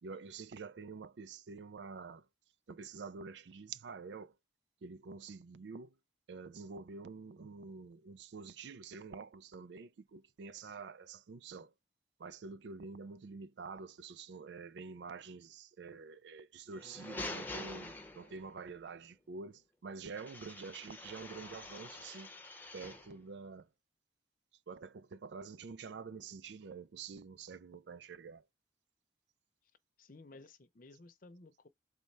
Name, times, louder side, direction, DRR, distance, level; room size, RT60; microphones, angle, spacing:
voice 1, 0.0-2.3 2.7-4.4 4.8-5.9 6.3-11.7 12.2-22.3 22.7-23.7 24.7-28.4, right 4 dB, 70° right, 0.4 m, -47 dB
sound 1, 16.7-18.6 20.2-23.2, left 2 dB, 10° left, 0.7 m, -46 dB
voice 2, 30.0-31.7, left 2 dB, 50° left, 0.7 m, -56 dB
4.2 x 3.2 x 3.3 m
head